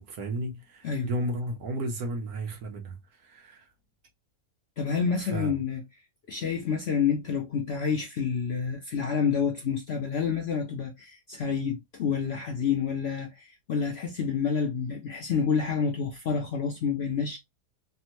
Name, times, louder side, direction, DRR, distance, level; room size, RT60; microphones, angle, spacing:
voice 1, 0.0-3.7 5.2-5.5, right 1 dB, 70° right, 1.3 m, -34 dB
voice 2, 4.8-5.8 6.3-17.4, left 6 dB, 65° left, 0.6 m, -28 dB
3.4 x 2.1 x 2.9 m
omnidirectional pair, 1.6 m